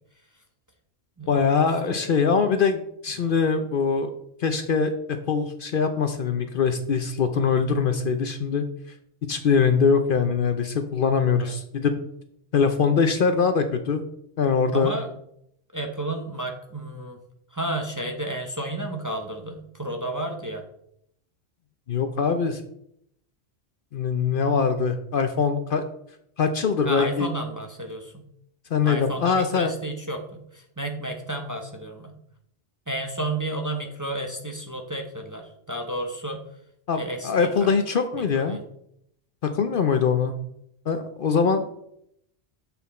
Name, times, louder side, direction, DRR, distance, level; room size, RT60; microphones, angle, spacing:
voice 1, 1.3-4.1 4.4-8.6 9.3-11.9 12.5-14.0 14.4-14.9 21.9-22.6 23.9-25.8 26.4-27.3 28.7-29.8 36.9-38.6 39.4-40.3 40.9-41.6, left 5 dB, 55° left, 8 dB, 0.7 m, -23 dB
voice 2, 14.7-15.1 15.7-17.2 17.5-20.6 26.8-28.1 28.8-32.1 32.9-36.4 36.9-37.7 38.1-38.6, right 1 dB, 20° right, 4 dB, 0.7 m, -32 dB
7.1 x 6.0 x 4.2 m, 0.73 s
omnidirectional pair, 1.2 m